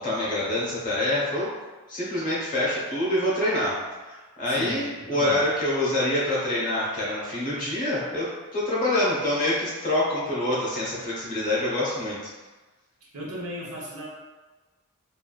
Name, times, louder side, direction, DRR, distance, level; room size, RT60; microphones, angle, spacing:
voice 1, 0.0-1.5 1.9-3.8 4.1-12.2, left 1 dB, 35° left, -7 dB, 1.1 m, -26 dB
voice 2, 4.4-5.4 13.1-14.1, equal, 75° right, -5 dB, 0.9 m, -36 dB
3.4 x 2.6 x 2.3 m, 1.3 s
head